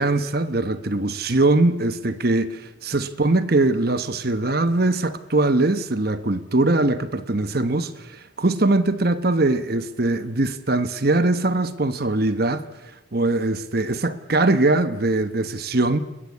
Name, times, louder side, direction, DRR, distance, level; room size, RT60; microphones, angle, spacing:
voice 1, 0.0-12.6 13.1-16.0, right 2 dB, 50° right, 1.1 m, -21 dB
29.5 x 21.0 x 8.4 m
head